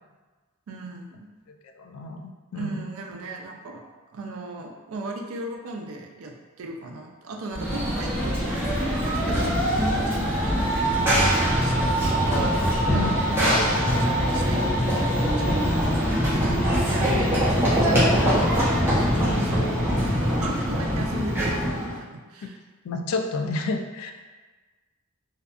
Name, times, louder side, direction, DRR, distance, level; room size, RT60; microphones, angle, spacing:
voice 1, 0.7-1.3 2.5-3.9 4.1-16.0 16.3-22.6, right 2 dB, 80° right, 1 dB, 0.4 m, -37 dB
voice 2, 1.8-2.8 12.9-13.3 20.1-20.2 22.8-24.1, left 3 dB, 90° left, 5 dB, 0.3 m, -30 dB
Run / Train, 7.5-22.0, equal, 10° right, 0.7 m, -23 dB
2.5 x 2.3 x 2.3 m, 1.3 s
head